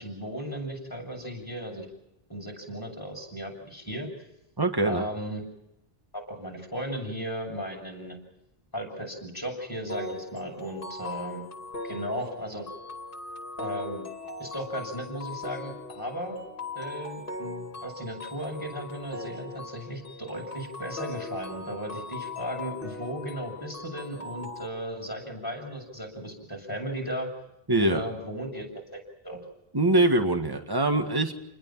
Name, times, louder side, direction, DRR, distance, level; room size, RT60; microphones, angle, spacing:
voice 1, 0.0-1.9 2.3-4.1 4.8-5.4 6.1-8.2 8.7-11.4 11.8-12.7 13.6-14.1 14.4-16.4 16.7-27.3 27.8-28.7 28.9-29.4, equal, 20° left, 0 dB, 7.2 m, -36 dB
voice 2, 4.6-5.0 27.7-28.0 29.7-31.3, right 2 dB, 20° right, 6 dB, 1.8 m, -23 dB
sound 1, 9.9-24.7, left 3 dB, 60° left, 2.5 m, -40 dB
30.0 x 21.0 x 5.8 m, 0.84 s
omnidirectional pair, 1.0 m